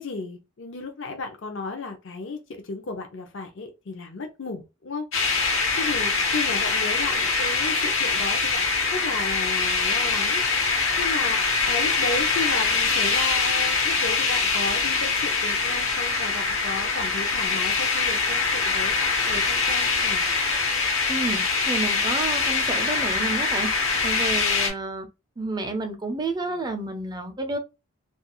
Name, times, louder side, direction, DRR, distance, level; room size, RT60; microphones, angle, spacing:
voice 1, 0.0-2.4 2.7-5.1 5.8-10.4 11.0-11.4 11.6-18.9 19.3-20.2, left 3 dB, 65° left, 0.5 m, -33 dB
sound 1, 5.1-24.7, left 4 dB, 85° left, 1.0 m, -24 dB
voice 2, 21.1-23.7 24.0-25.1 25.4-27.6, right 2 dB, 20° right, 0.4 m, -30 dB
2.3 x 2.3 x 2.9 m
head